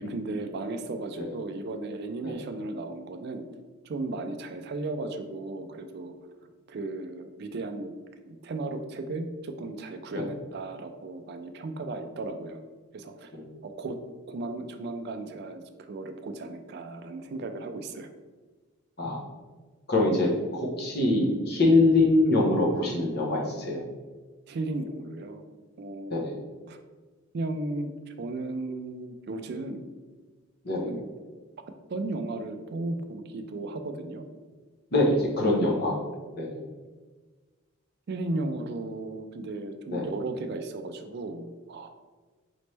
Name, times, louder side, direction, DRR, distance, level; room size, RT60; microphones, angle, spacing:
voice 1, 0.0-3.4 3.8-6.1 6.7-7.9 8.3-12.6 12.9-13.3 13.6-14.0 14.3-18.1 24.5-25.4 25.8-26.8 27.3-29.8 30.8-31.1 31.9-34.3 35.4-35.6 38.1-41.9, right 2 dB, 45° right, 7 dB, 0.3 m, -35 dB
voice 2, 19.9-20.3 20.8-23.8 26.1-26.3 30.6-30.9 34.9-36.0 36.4-36.6 39.9-40.1, left 2 dB, 45° left, -2 dB, 0.8 m, -24 dB
4.1 x 3.1 x 3.2 m, 1.4 s
head